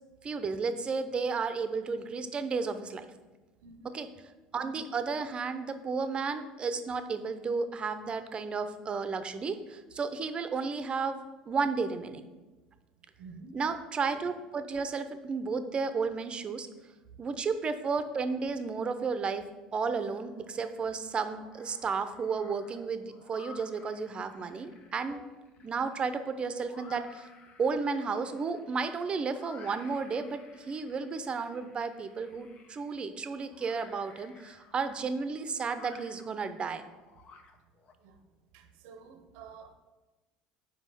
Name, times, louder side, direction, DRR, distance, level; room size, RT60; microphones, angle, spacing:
voice 1, 0.2-3.1 3.8-4.1 4.5-11.2 11.5-12.2 13.5-16.7 17.2-19.4 19.7-27.3 27.6-36.8, right 5 dB, 35° right, 10 dB, 0.7 m, -33 dB
voice 2, 3.6-4.0 13.2-13.6 25.6-25.7 38.0-38.2 38.5-39.7, right 4 dB, 75° right, 7 dB, 0.8 m, -50 dB
sound 1, 20.2-20.8 21.2-37.9, left 4 dB, 50° left, 0.9 m, -56 dB
5.4 x 4.8 x 6.2 m, 1.2 s
hypercardioid pair, 80°, 3 cm